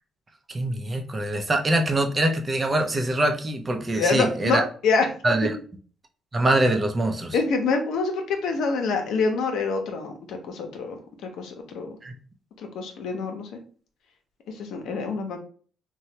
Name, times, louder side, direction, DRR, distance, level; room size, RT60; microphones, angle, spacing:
voice 1, 0.5-4.6 5.2-5.6 6.3-7.4 12.0-12.1, right 1 dB, 30° right, 4 dB, 0.6 m, -24 dB
voice 2, 3.9-5.1 7.3-11.9 12.6-13.5 14.6-15.4, left 4 dB, 80° left, 4 dB, 0.7 m, -26 dB
3.1 x 2.2 x 2.8 m, 0.42 s
cardioid pair, 90°, 0 cm